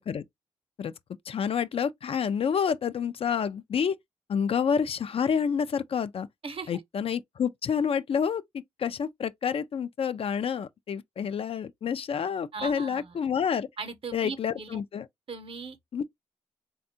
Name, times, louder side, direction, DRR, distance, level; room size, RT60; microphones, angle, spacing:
voice 1, 1.3-4.0 4.3-6.3 6.7-13.7 14.1-15.1 15.9-16.0, left 7 dB, 55° left, 0.4 m, -28 dB
voice 2, 12.5-13.2 13.8-14.8 15.3-15.8, right 4 dB, 50° right, 0.7 m, -38 dB
3.5 x 2.2 x 2.6 m
supercardioid pair, 50°, 12 cm